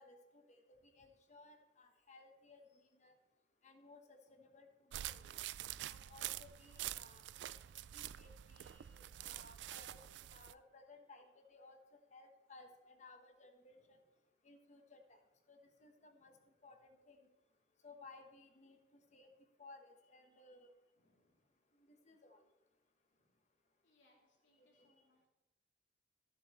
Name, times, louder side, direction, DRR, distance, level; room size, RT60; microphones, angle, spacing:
voice 1, 0.0-3.1 3.6-5.3 5.9-7.5 7.9-11.8 12.1-14.0 14.4-15.2 15.5-16.3 16.6-17.3 17.8-18.8 19.1-19.3 19.6-20.7 21.9-22.4 24.6-24.7, left 3 dB, 40° left, 5 dB, 1.2 m, -60 dB
voice 2, 0.9-1.3 3.1-3.2 4.3-4.7 13.6-14.1 16.2-16.5 18.9-19.3 21.0-21.5 23.1-23.4 23.8-25.3, left 1 dB, 80° left, -2 dB, 2.7 m, -78 dB
sound 1, 4.9-10.5, right 13 dB, 70° right, 0.3 m, -47 dB
13.5 x 7.2 x 4.3 m, 1.0 s
head